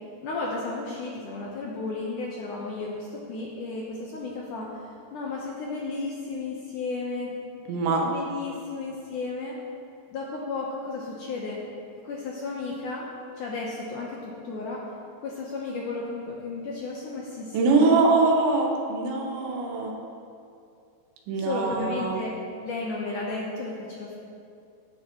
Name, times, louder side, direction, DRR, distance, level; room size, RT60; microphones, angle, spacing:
voice 1, 0.2-4.7 5.1-7.7 8.0-9.6 10.1-11.6 12.0-13.1 13.4-14.8 15.2-17.9 21.4-22.3 22.6-24.1, left 3 dB, 85° left, -3 dB, 1.8 m, -33 dB
voice 2, 7.7-8.0 17.5-19.9 21.3-22.2, right 3 dB, 80° right, 1 dB, 3.3 m, -23 dB
16.5 x 10.0 x 3.0 m, 2.4 s
omnidirectional pair, 5.2 m